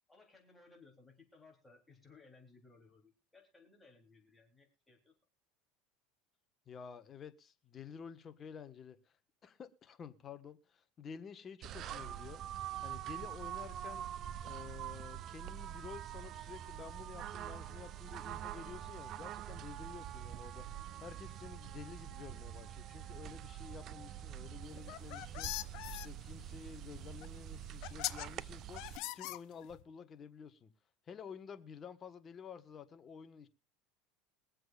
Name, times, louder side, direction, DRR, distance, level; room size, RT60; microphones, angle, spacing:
voice 1, 0.1-5.1, left 3 dB, 10° left, 3.5 m, -62 dB
voice 2, 6.7-9.2 9.4-14.1 14.4-30.7 31.1-33.5, left 6 dB, 25° left, 1.3 m, -51 dB
sound 1, 11.6-29.0, right 11 dB, 40° right, 0.5 m, -45 dB
sound 2, 24.8-26.1 27.2-27.3 27.8-28.3 28.8-29.8, left 17 dB, 55° left, 0.8 m, -41 dB
23.0 x 7.7 x 2.5 m
supercardioid pair, 140°, 0 cm